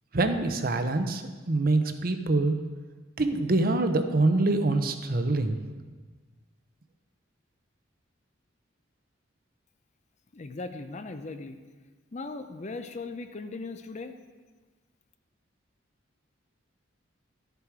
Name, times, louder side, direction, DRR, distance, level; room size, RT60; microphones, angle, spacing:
voice 1, 0.1-2.6 3.2-5.6, right 2 dB, 45° right, 8 dB, 0.7 m, -25 dB
voice 2, 10.3-11.6 12.1-14.1, left 3 dB, 35° left, 8 dB, 0.5 m, -38 dB
12.0 x 6.8 x 4.7 m, 1.4 s
head